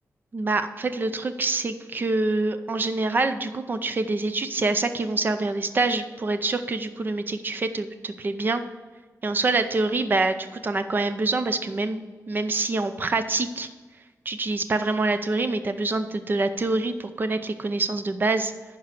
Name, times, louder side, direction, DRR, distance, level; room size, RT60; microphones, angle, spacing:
voice 1, 0.3-8.6 9.2-12.0 12.3-13.7 14.3-18.5, right 3 dB, 35° right, 9 dB, 0.6 m, -26 dB
11.5 x 4.7 x 6.9 m, 1.4 s
wide cardioid pair, 170°, 6 cm